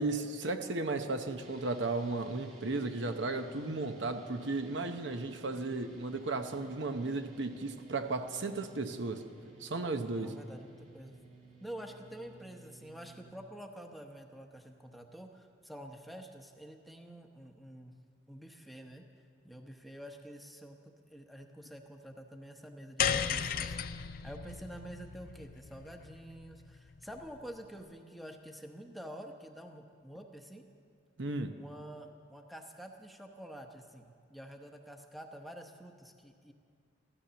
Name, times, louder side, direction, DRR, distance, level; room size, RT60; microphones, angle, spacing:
voice 1, 0.0-9.2 9.6-10.3 31.2-31.5, right 3 dB, 65° right, 7 dB, 0.8 m, -35 dB
sound 1, 1.4-13.3, right 2 dB, 30° right, 1.6 m, -55 dB
voice 2, 10.0-11.2 11.6-18.0 18.3-19.0 19.4-20.8 21.1-30.6 31.5-36.5, right 1 dB, ahead, 3 dB, 0.9 m, -48 dB
sound 2, 23.0-27.4, left 7 dB, 45° left, 0.5 m, -35 dB
15.0 x 13.0 x 6.9 m, 2.2 s
head